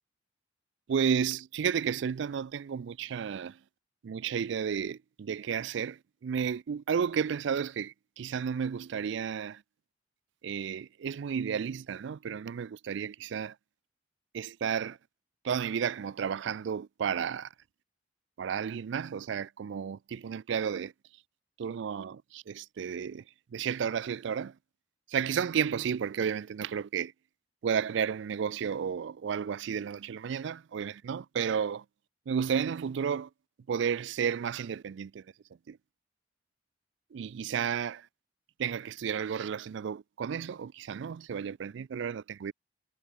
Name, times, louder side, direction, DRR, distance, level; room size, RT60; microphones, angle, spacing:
voice 1, 0.9-3.6 4.0-9.6 10.4-13.5 14.3-15.0 15.4-17.5 18.4-20.9 21.6-23.2 23.5-24.5 25.1-27.1 27.6-31.8 32.3-33.3 33.7-35.2 35.7-35.8 37.1-38.0 38.6-42.5, right 7 dB, 65° right, 0.3 m, -32 dB
head